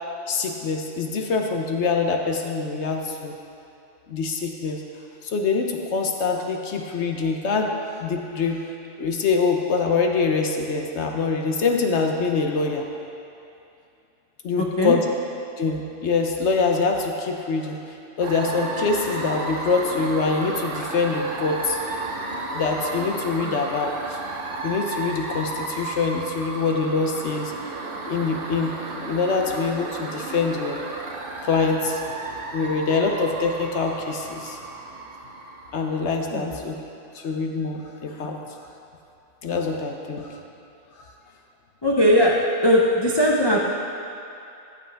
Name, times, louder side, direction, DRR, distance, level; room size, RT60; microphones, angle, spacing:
voice 1, 0.3-3.4 4.1-4.8 5.2-7.7 8.0-8.7 9.0-12.9 14.4-15.0 15.6-17.8 18.2-21.8 22.5-24.2 24.6-27.5 28.1-30.8 31.4-32.0 32.5-34.6 35.7-36.7 37.1-38.4 39.4-40.4 41.0-41.1, left 4 dB, 60° left, 2 dB, 1.1 m, -24 dB
voice 2, 14.6-15.0 23.4-23.6 36.3-36.6 41.8-43.7, equal, 30° left, -3 dB, 0.5 m, -20 dB
sound 1, 18.2-36.2, right 3 dB, 50° right, 1.0 m, -33 dB
14.0 x 7.9 x 3.4 m, 2.6 s
omnidirectional pair, 1.4 m